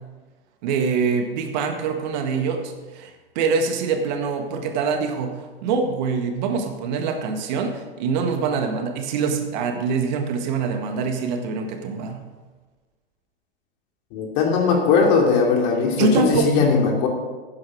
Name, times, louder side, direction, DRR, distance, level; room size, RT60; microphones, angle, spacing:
voice 1, 0.6-12.2 16.0-16.7, right 5 dB, 50° right, 5 dB, 1.6 m, -24 dB
voice 2, 14.1-17.1, left 5 dB, 45° left, 1 dB, 2.7 m, -19 dB
12.0 x 9.4 x 4.9 m, 1.3 s
figure-of-eight pair, 100°, 30 cm